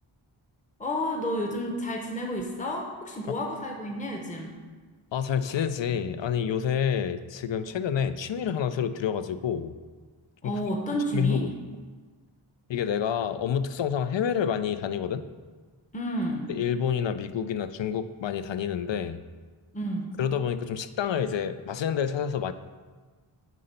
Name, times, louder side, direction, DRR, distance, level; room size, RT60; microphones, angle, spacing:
voice 1, 0.8-4.5 10.4-11.5 15.9-16.5 19.7-20.1, equal, 15° left, 1 dB, 0.8 m, -31 dB
voice 2, 5.1-9.7 11.1-11.5 12.7-15.2 16.5-19.2 20.2-22.5, left 8 dB, 65° left, 12 dB, 0.5 m, -28 dB
8.4 x 3.9 x 5.3 m, 1.4 s
wide cardioid pair, 50°, 48 cm